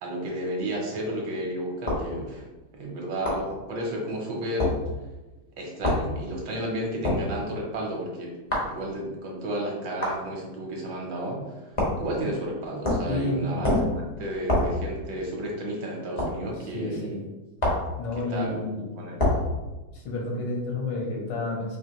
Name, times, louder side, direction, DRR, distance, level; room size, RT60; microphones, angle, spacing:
voice 1, 0.0-2.4 2.7-4.8 5.6-8.3 8.6-17.2 18.1-18.6 18.9-19.3, right 1 dB, 70° right, -1 dB, 1.5 m, -32 dB
sound 1, 1.9-2.1 3.3-3.5 4.6-4.8 5.8-6.1 7.0-7.3 8.5-8.7 10.0-10.2 11.8-12.1 12.8-13.1 13.6-14.0 14.5-14.8 16.2-16.4 17.6-17.9 19.2-19.5, left 1 dB, 45° left, 0.4 m, -25 dB
voice 2, 13.1-13.6 16.7-17.2 18.0-18.9 20.1-21.8, left 2 dB, 80° left, -1 dB, 1.8 m, -30 dB
4.9 x 2.7 x 2.9 m, 1.1 s
omnidirectional pair, 2.2 m